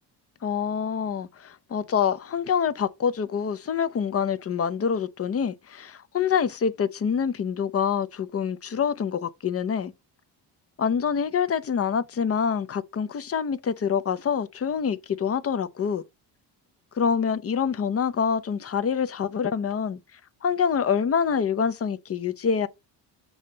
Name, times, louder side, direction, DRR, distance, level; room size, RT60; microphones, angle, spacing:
voice 1, 0.4-9.9 10.8-16.0 16.9-20.0 20.4-22.7, left 7 dB, 35° left, 0.6 m, -26 dB
7.1 x 2.8 x 5.2 m
cardioid pair, 110°, 42 cm